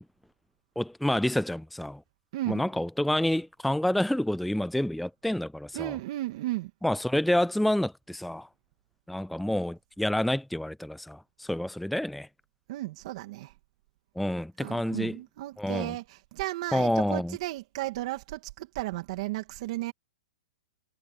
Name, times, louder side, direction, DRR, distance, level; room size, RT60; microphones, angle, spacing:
voice 1, 0.8-2.0 2.5-5.9 6.8-8.5 9.1-12.3 14.2-15.2 15.6-15.9 16.7-17.4, left 1 dB, ahead, 0.3 m, -28 dB
voice 2, 2.3-2.7 5.7-6.7 12.7-13.5 14.6-19.9, right 17 dB, 45° right, 2.6 m, -34 dB
hypercardioid pair, 155°, 4 cm